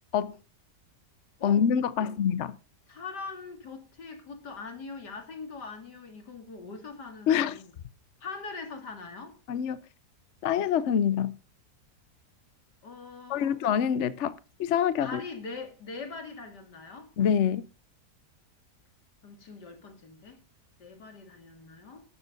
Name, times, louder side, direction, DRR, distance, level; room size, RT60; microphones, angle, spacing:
voice 1, 1.4-2.6 7.3-7.6 9.5-9.8 10.4-11.4 13.3-15.2 17.2-17.7, left 8 dB, 55° left, 0.9 m, -26 dB
voice 2, 2.9-7.7 8.2-9.4 12.8-13.6 15.0-17.1 19.2-20.4 20.8-22.0, left 4 dB, 85° left, 3.3 m, -42 dB
12.5 x 9.8 x 5.3 m
omnidirectional pair, 1.7 m